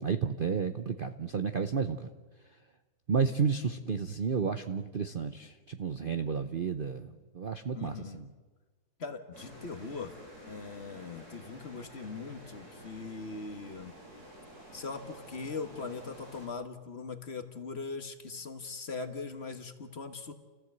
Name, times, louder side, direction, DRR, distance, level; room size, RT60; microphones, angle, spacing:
voice 1, 0.0-2.1 3.1-8.3, right 6 dB, 45° right, 8 dB, 0.7 m, -32 dB
voice 2, 7.7-8.3 9.0-10.1 10.5-13.9 14.7-20.3, left 4 dB, 40° left, 7 dB, 1.5 m, -40 dB
sound 1, 9.3-16.5, equal, 60° right, 6.5 m, -50 dB
30.0 x 15.0 x 8.1 m, 1.3 s
omnidirectional pair, 1.8 m